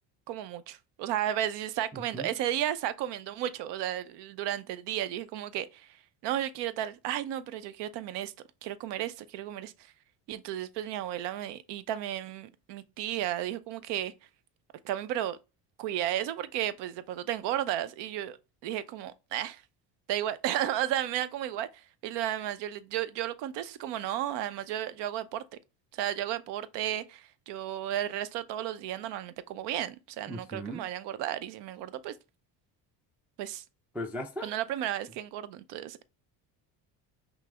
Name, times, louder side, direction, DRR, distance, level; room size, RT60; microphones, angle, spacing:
voice 1, 0.3-8.3 8.6-9.9 10.3-14.1 14.8-15.4 15.8-18.4 18.6-19.6 20.1-25.4 25.9-32.1 33.4-33.6 34.4-36.0, right 12 dB, 65° right, 0.6 m, -33 dB
voice 2, 1.9-2.3 30.3-30.9 33.9-34.5, equal, 5° right, 0.4 m, -38 dB
5.9 x 2.0 x 3.2 m
supercardioid pair, 100°, 45 cm